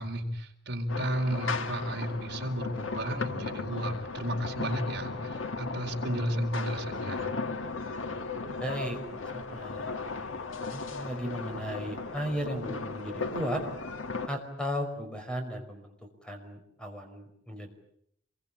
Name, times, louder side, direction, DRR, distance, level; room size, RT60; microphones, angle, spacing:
voice 1, 0.0-7.3, equal, 55° right, 2 dB, 4.3 m, -33 dB
sound 1, 0.9-14.3, left 4 dB, 80° left, 1.6 m, -36 dB
voice 2, 8.6-13.6 14.3-15.9 16.2-17.7, equal, 5° left, 5 dB, 5.4 m, -36 dB
27.0 x 23.0 x 8.8 m, 0.72 s
head